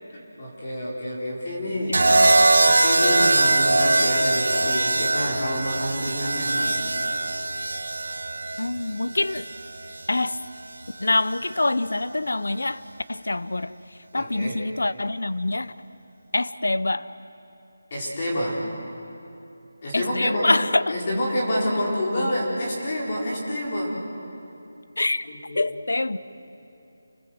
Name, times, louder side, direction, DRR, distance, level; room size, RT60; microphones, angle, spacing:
voice 1, 0.1-2.0 2.6-6.8 14.1-14.5 17.9-18.6 19.8-20.5 20.9-23.9 25.2-25.6, equal, 30° left, -4 dB, 4.7 m, -28 dB
sound 1, 1.9-10.1 11.3-11.7, right 2 dB, 80° right, 1.4 m, -22 dB
voice 2, 8.6-9.5 10.1-10.4 11.0-12.8 13.1-13.7 14.1-15.7 16.3-17.1 19.9-20.9 25.0-25.3 25.5-26.2, left 2 dB, 90° left, 15 dB, 0.8 m, -25 dB
29.0 x 21.0 x 7.8 m, 2.8 s
figure-of-eight pair, 175°, 0 cm